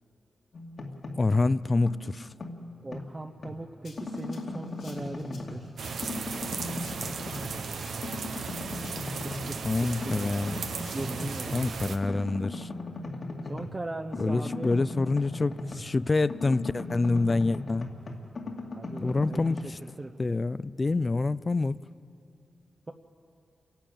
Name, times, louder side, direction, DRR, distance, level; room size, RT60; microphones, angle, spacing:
sound 1, 0.5-1.5 1.9-3.6 4.0-5.7 6.0-7.8 8.0-9.6 10.0-11.6 12.0-16.0 16.3-19.6, left 2 dB, 60° left, 2.4 m, -38 dB
voice 1, 1.2-2.3 9.6-10.7 11.5-12.7 14.2-17.9 19.0-19.8 20.2-21.8, left 3 dB, 35° left, 18 dB, 0.4 m, -27 dB
voice 2, 2.8-5.7 9.2-9.9 10.9-11.5 11.8-12.2 13.5-14.7 18.7-20.1, right 2 dB, 30° right, 2 dB, 0.9 m, -39 dB
Rattle (instrument), 3.8-11.8, left 3 dB, 80° left, 4.5 m, -54 dB
sound 2, 5.8-12.0, right 5 dB, 80° right, 1.2 m, -36 dB
29.0 x 11.5 x 8.9 m, 2.5 s
cardioid pair, 70°, 0 cm